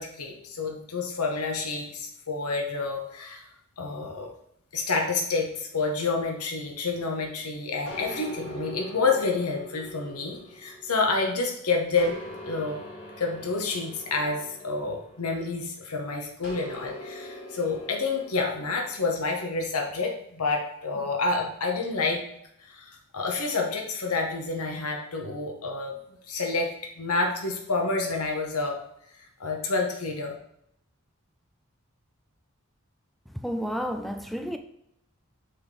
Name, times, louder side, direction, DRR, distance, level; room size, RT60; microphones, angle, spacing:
voice 1, 0.0-3.5 3.8-4.3 4.7-12.2 12.4-12.8 13.2-22.2 22.6-28.8 29.1-30.3, left 3 dB, 85° left, 1.1 m, -29 dB
sound 1, 7.9-11.4 12.0-15.7 16.4-19.1, left 1 dB, 55° left, 2.0 m, -42 dB
voice 2, 33.3-34.6, equal, ahead, 0.3 m, -31 dB
6.2 x 3.6 x 4.7 m
head